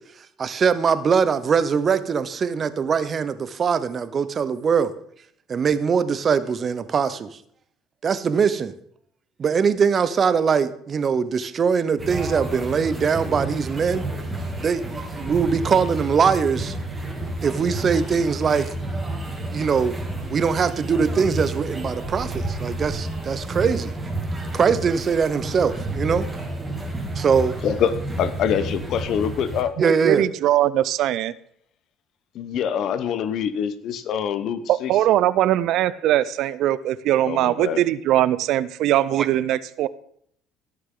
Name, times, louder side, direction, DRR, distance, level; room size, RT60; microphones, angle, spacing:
voice 1, 0.4-4.9 5.5-7.4 8.0-8.7 9.4-14.0 14.6-16.7 17.4-18.7 19.5-20.0 20.2-23.9 24.5-26.3 27.2-27.6 29.8-30.2 39.1-39.3, right 6 dB, 40° right, 14 dB, 0.8 m, -22 dB
sound 1, 12.0-29.6, right 1 dB, 15° right, 2.6 m, -30 dB
voice 2, 27.6-29.7 32.3-34.9 37.3-37.8, left 8 dB, 60° left, 13 dB, 0.9 m, -25 dB
voice 3, 29.8-31.3 34.7-39.9, right 13 dB, 65° right, 18 dB, 0.4 m, -21 dB
16.5 x 6.5 x 3.8 m, 0.66 s
supercardioid pair, 85°, 0 cm